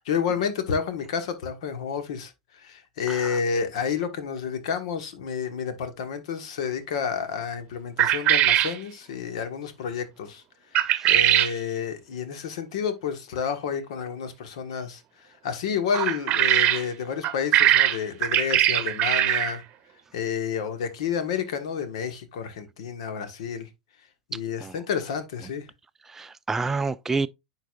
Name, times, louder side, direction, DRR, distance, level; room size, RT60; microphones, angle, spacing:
voice 1, 0.0-10.4 10.7-15.0 15.4-19.6 20.1-23.7 24.3-25.7, left 7 dB, 70° left, 1.4 m, -30 dB
voice 2, 3.1-3.4 10.9-11.1 24.6-24.7 26.1-27.3, right 4 dB, 10° right, 0.3 m, -29 dB
sound 1, 8.0-8.8 10.7-11.5 15.9-16.8 17.2-19.6, right 12 dB, 45° right, 0.8 m, -21 dB
10.0 x 4.0 x 2.5 m
hypercardioid pair, 95°, 3 cm